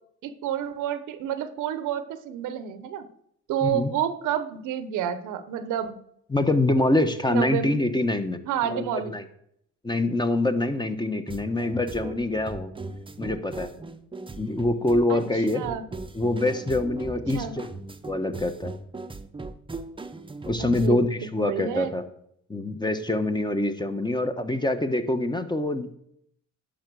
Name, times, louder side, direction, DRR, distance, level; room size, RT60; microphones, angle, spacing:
voice 1, 0.2-3.1 3.5-6.0 7.3-7.8 8.5-9.1 15.1-15.2 15.5-15.8 17.3-17.6 20.6-21.0 21.4-21.9, right 9 dB, 90° right, 12 dB, 1.0 m, -29 dB
voice 2, 6.3-9.2 9.8-12.7 13.2-13.7 14.4-15.6 16.1-17.7 18.1-18.7 20.5-22.0 22.5-25.9, left 2 dB, 15° left, 8 dB, 1.1 m, -25 dB
sound 1, 11.3-20.9, right 3 dB, 15° right, 0.8 m, -39 dB
10.0 x 5.8 x 6.3 m, 0.71 s
cardioid pair, 90°, 30 cm